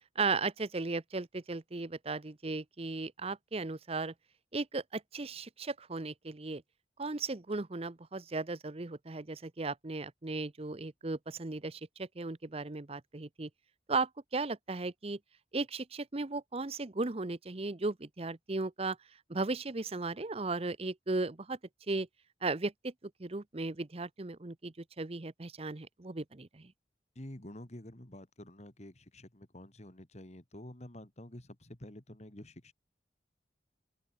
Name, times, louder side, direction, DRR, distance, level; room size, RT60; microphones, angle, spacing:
voice 1, 0.2-4.1 4.5-6.6 7.0-13.5 13.9-15.2 15.5-19.0 19.3-21.6 21.9-22.1 22.4-22.9 23.2-26.7, right 3 dB, 35° right, 0.8 m, -36 dB
voice 2, 27.2-32.7, left 1 dB, 40° left, 2.4 m, -49 dB
open air
head